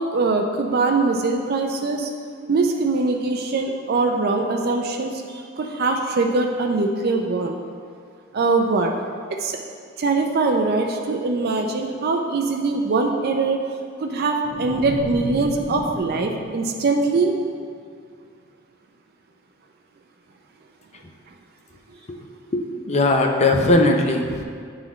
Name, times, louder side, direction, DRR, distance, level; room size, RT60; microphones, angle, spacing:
voice 1, 0.0-2.1 2.5-7.6 8.3-8.9 9.4-9.6 10.0-13.6 14.0-17.3, right 3 dB, 50° right, 3 dB, 0.4 m, -22 dB
sound 1, 14.4-17.7, right 1 dB, 15° left, 1.1 m, -33 dB
voice 2, 22.5-24.4, left 2 dB, 30° left, 3 dB, 0.5 m, -19 dB
10.0 x 3.9 x 3.0 m, 2.2 s
head